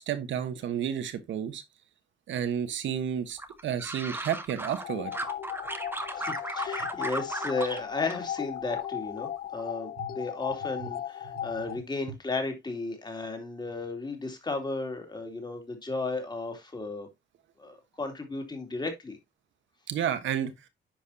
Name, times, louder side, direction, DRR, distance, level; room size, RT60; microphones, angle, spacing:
voice 1, 0.0-1.6 2.3-5.1 10.0-10.1 11.4-11.5 19.9-20.5, right 9 dB, 70° right, 1.3 m, -31 dB
sound 1, 3.4-4.8 5.1-7.8 8.1-8.9 9.2-9.6, right 1 dB, 10° right, 1.1 m, -36 dB
sound 2, 4.8-11.8, left 11 dB, 50° left, 0.4 m, -36 dB
voice 2, 6.1-17.1 17.6-19.2, left 3 dB, 20° left, 2.6 m, -34 dB
10.5 x 4.9 x 2.8 m
cardioid pair, 90°, 20 cm